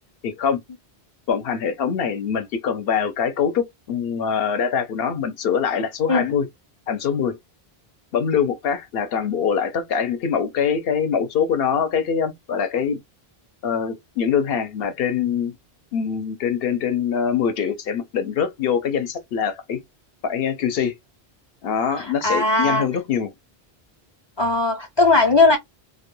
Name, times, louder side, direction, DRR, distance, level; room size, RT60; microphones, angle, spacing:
voice 1, 0.2-0.6 1.3-6.5 6.9-7.4 8.1-13.0 13.6-15.5 15.9-19.8 20.2-20.9 21.6-23.3, left 7 dB, 70° left, 0.8 m, -23 dB
voice 2, 22.0-22.8 24.4-25.6, left 2 dB, 40° left, 0.4 m, -18 dB
2.2 x 2.1 x 3.0 m
omnidirectional pair, 1.1 m